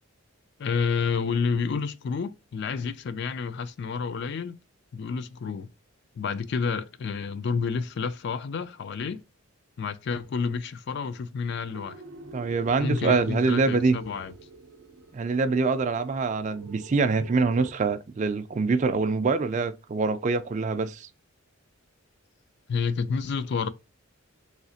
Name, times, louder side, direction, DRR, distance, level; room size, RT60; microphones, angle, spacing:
voice 1, 0.6-4.6 4.9-5.7 6.2-9.2 9.8-12.0 12.8-14.3 22.7-23.7, left 5 dB, 50° left, 0.3 m, -29 dB
sound 1, 11.7-17.7, right 2 dB, 80° right, 0.6 m, -45 dB
voice 2, 12.3-14.0 15.1-21.1, right 4 dB, 35° right, 0.3 m, -25 dB
3.2 x 2.8 x 2.7 m
head